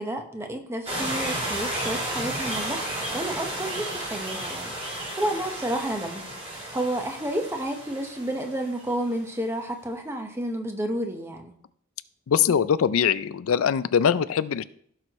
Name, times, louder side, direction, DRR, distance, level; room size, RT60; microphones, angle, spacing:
voice 1, 0.0-2.8 3.1-6.2 6.5-11.5, right 1 dB, 15° right, 4 dB, 1.1 m, -31 dB
sound 1, 0.9-9.2, right 1 dB, 30° right, 4.7 m, -33 dB
voice 2, 12.3-14.6, left 7 dB, 80° left, 15 dB, 0.4 m, -22 dB
15.5 x 6.3 x 3.1 m, 0.63 s
head